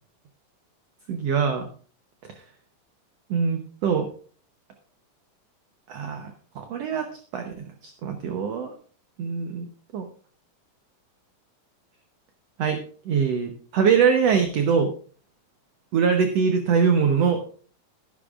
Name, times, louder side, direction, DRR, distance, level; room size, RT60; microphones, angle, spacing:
voice 1, 1.1-1.7 3.3-4.1 5.9-7.5 7.8-8.7 9.2-9.7 9.9-10.1 12.6-14.9 15.9-17.5, right 6 dB, 65° right, 5 dB, 1.7 m, -23 dB
13.5 x 11.5 x 2.5 m, 0.42 s
omnidirectional pair, 3.8 m